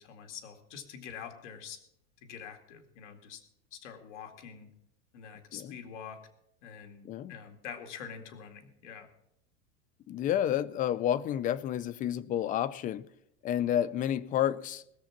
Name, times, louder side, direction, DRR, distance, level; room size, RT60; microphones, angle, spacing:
voice 1, 0.0-1.8 2.2-3.4 3.7-4.7 5.1-6.2 6.6-9.1, left 7 dB, 85° left, 5 dB, 2.2 m, -45 dB
voice 2, 10.1-13.1 13.4-14.8, left 11 dB, 25° left, 18 dB, 0.5 m, -30 dB
20.5 x 7.0 x 5.9 m, 0.76 s
supercardioid pair, 140°, 35 cm